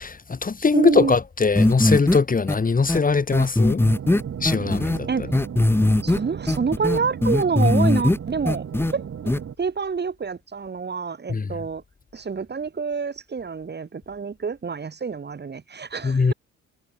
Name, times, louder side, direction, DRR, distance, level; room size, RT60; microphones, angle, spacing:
voice 1, 0.0-3.8 4.4-5.3 11.3-11.5 16.0-16.3, left 4 dB, 30° left, 2.2 m, -21 dB
voice 2, 0.7-1.1 5.1-5.3 6.0-11.8 12.1-16.3, right 5 dB, 35° right, 2.6 m, -27 dB
sound 1, 1.6-2.2 2.5-2.6 2.9-3.0 3.3-5.0 5.3-6.2 6.5-8.2 8.5-8.9 9.3-9.4, left 2 dB, 10° left, 0.9 m, -19 dB
sound 2, 3.8-9.5, right 8 dB, 50° right, 3.0 m, -35 dB
cardioid pair, 90°, 30 cm